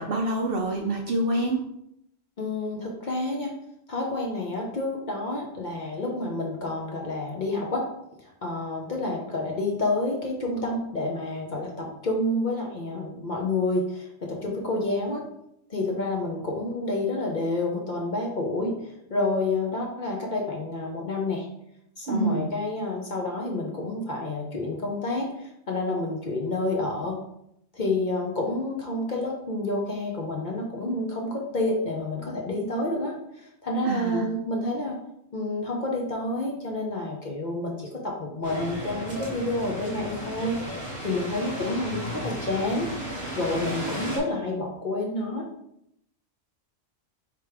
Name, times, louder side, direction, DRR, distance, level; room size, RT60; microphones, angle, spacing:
voice 1, 0.0-1.6 22.1-22.5 33.8-34.3, right 2 dB, 60° right, 1 dB, 0.6 m, -26 dB
voice 2, 2.4-3.5 3.9-7.8 8.2-15.2 15.7-21.5 22.0-27.2 27.7-35.0 35.3-42.9 43.3-45.4, left 2 dB, 45° left, -1 dB, 0.7 m, -29 dB
sound 1, 38.4-44.2, equal, 15° right, 1.2 m, -34 dB
3.3 x 2.9 x 4.7 m, 0.78 s
omnidirectional pair, 1.3 m